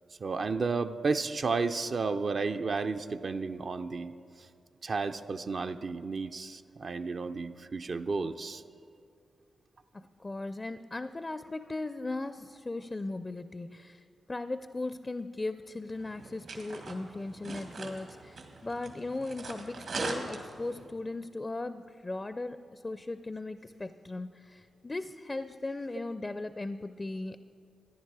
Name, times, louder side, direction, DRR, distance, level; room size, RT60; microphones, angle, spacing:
voice 1, 0.2-4.1 4.8-8.6, right 4 dB, 55° right, 7 dB, 0.5 m, -32 dB
voice 2, 9.9-14.0 14.3-27.4, left 2 dB, 30° left, 12 dB, 0.4 m, -38 dB
sound 1, 15.9-20.9, right 3 dB, 75° right, 1.8 m, -41 dB
14.0 x 10.0 x 4.8 m, 2.4 s
supercardioid pair, 45°, 0 cm